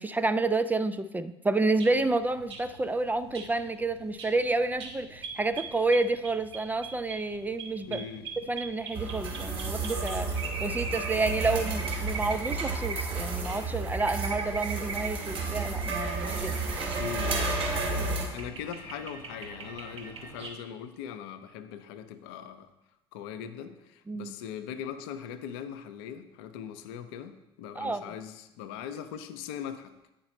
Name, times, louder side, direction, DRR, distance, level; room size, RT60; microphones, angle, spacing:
voice 1, 0.0-8.0 8.4-16.5 24.1-24.3 27.8-28.0, right 3 dB, 10° right, 11 dB, 0.3 m, -29 dB
sound 1, 1.8-20.5, right 4 dB, 75° right, 1.0 m, -41 dB
voice 2, 7.9-8.3 17.0-17.5 18.3-22.7 23.1-30.0, left 8 dB, 60° left, 10 dB, 0.6 m, -40 dB
sound 2, 8.9-18.3, right 3 dB, 40° right, 2.1 m, -32 dB
8.7 x 5.2 x 4.2 m, 0.96 s
figure-of-eight pair, 65°, 14 cm